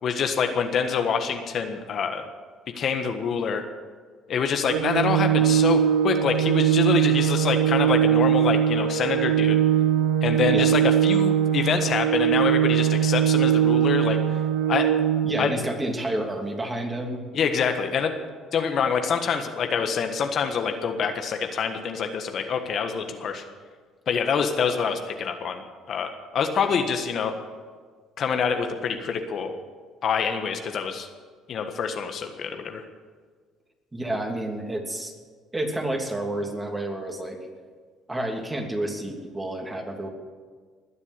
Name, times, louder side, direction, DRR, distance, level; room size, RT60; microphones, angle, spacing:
voice 1, 0.0-2.2 2.7-3.6 4.3-9.6 10.2-14.2 14.7-14.9 15.4-15.5 17.3-18.1 18.5-23.4 24.1-27.3 28.2-29.5 30.0-31.1 31.5-32.8, left 6 dB, 55° left, 5 dB, 1.5 m, -26 dB
Organ, 4.7-15.6, right 10 dB, 80° right, 0.6 m, -21 dB
voice 2, 15.2-17.2 33.9-35.1 35.5-37.4 38.1-40.1, right 1 dB, 15° right, 2 dB, 3.0 m, -30 dB
20.5 x 7.3 x 8.4 m, 1.5 s
supercardioid pair, 80°, 0 cm